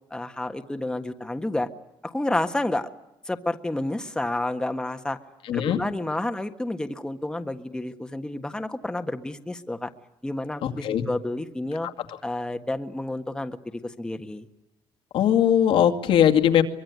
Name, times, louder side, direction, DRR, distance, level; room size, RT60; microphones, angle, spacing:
voice 1, 0.1-1.7 2.0-2.9 3.2-5.2 5.5-9.9 10.2-11.9 12.2-14.4, left 1 dB, 10° left, 6 dB, 1.6 m, -30 dB
voice 2, 5.5-5.8 10.6-11.0 15.1-16.6, left 10 dB, 75° left, 4 dB, 2.4 m, -20 dB
24.0 x 21.5 x 9.6 m, 0.91 s
cardioid pair, 110°, 9 cm